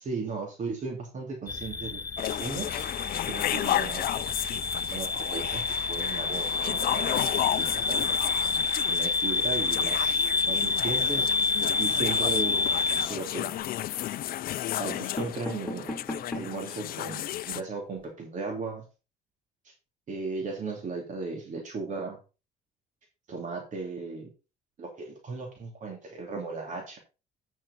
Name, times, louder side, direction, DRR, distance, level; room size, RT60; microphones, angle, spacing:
voice 1, 0.0-2.9 3.3-4.0 4.9-7.1 7.6-8.1 8.6-11.3 11.8-12.7 13.1-13.6 14.7-15.9 16.3-18.8 20.1-22.2 23.3-24.3 24.8-27.0, right 4 dB, 50° right, 1 dB, 2.9 m, -36 dB
sound 1, 1.5-13.1, left 4 dB, 25° left, 0.9 m, -28 dB
sound 2, 2.2-17.6, left 13 dB, 60° left, 0.5 m, -33 dB
sound 3, 14.9-16.7 17.2-17.3 17.5-17.6 17.9-18.0, left 1 dB, 5° left, 2.4 m, -38 dB
9.1 x 6.4 x 4.1 m, 0.30 s
cardioid pair, 110°, 17 cm